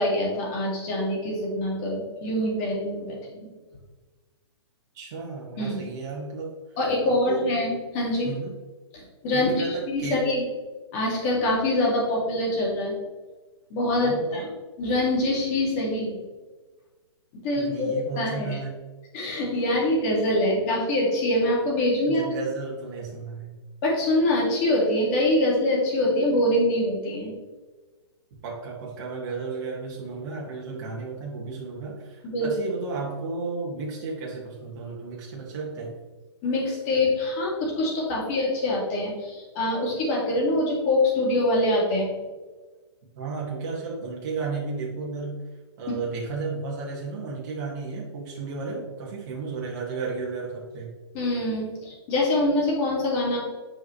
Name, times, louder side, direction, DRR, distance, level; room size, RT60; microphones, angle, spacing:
voice 1, 0.0-3.5 5.6-5.8 6.8-8.3 8.9-10.4 10.9-12.9 13.7-14.4 14.8-16.2 17.4-18.6 19.1-22.2 23.8-27.3 32.3-32.5 36.4-42.1 51.1-53.4, left 1 dB, 30° left, -3 dB, 2.2 m, -24 dB
voice 2, 4.9-6.6 7.0-7.5 8.2-8.5 9.3-10.2 14.0-14.5 17.6-18.7 22.1-23.6 28.4-35.9 43.2-45.4 45.8-50.9, right 4 dB, 40° right, -3 dB, 1.8 m, -33 dB
8.7 x 4.8 x 3.2 m, 1.3 s
hypercardioid pair, 160°, 15 cm